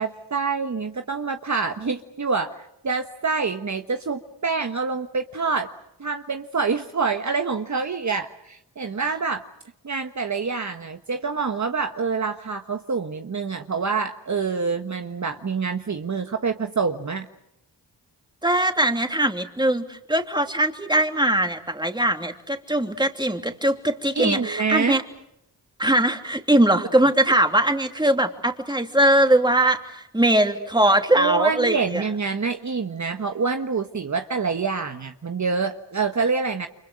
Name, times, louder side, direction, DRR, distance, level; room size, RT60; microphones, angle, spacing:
voice 1, 0.0-2.6 2.8-5.7 6.0-9.5 9.8-17.3 24.1-25.0 31.1-36.7, right 5 dB, 40° right, 6 dB, 1.4 m, -26 dB
voice 2, 18.4-25.0 25.8-32.0, right 1 dB, 10° right, 5 dB, 3.0 m, -21 dB
30.0 x 25.0 x 6.5 m, 0.81 s
cardioid pair, 45°, 42 cm